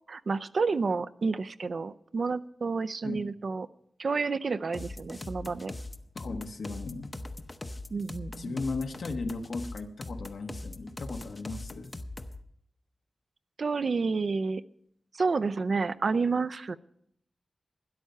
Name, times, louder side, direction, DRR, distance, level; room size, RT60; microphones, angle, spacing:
voice 1, 0.1-3.7 4.0-5.7 7.9-8.6 13.6-14.6 15.1-16.8, right 4 dB, 60° right, 13 dB, 0.5 m, -30 dB
sound 1, 4.7-12.4, left 2 dB, 25° left, 0.7 m, -40 dB
voice 2, 6.1-7.1 8.4-11.9, left 3 dB, 75° left, 6 dB, 1.3 m, -36 dB
13.0 x 10.5 x 5.6 m, 0.72 s
wide cardioid pair, 110°, 0 cm